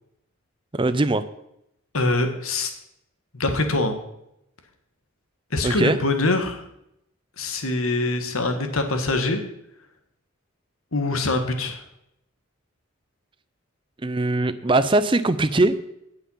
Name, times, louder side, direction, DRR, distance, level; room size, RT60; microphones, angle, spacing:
voice 1, 0.7-1.2 5.6-6.0 14.0-15.9, right 2 dB, 25° right, 14 dB, 0.5 m, -21 dB
voice 2, 1.9-2.7 3.3-4.0 5.5-6.6 7.4-9.4 10.9-11.8, left 2 dB, 85° left, 6 dB, 1.6 m, -24 dB
17.0 x 5.8 x 5.6 m, 0.80 s
head